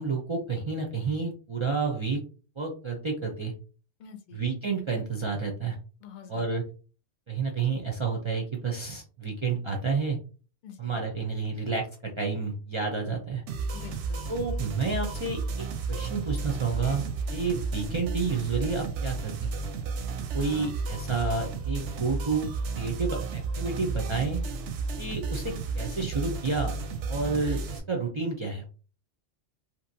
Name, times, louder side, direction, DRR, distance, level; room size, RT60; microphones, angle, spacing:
voice 1, 0.0-2.2 2.6-3.5 4.3-5.8 6.3-6.6 7.3-10.2 10.8-13.4 14.3-17.0 17.3-19.5 20.3-22.5 22.7-24.4 25.0-26.8 27.1-28.6, right 4 dB, 45° right, 0 dB, 0.4 m, -30 dB
voice 2, 4.0-4.4 6.0-6.5 10.6-11.0 13.7-14.2 20.4-20.7, left 7 dB, 55° left, 8 dB, 0.5 m, -46 dB
sound 1, 13.5-27.8, right 4 dB, 85° right, 0.9 m, -33 dB
3.0 x 2.5 x 2.6 m, 0.36 s
omnidirectional pair, 1.2 m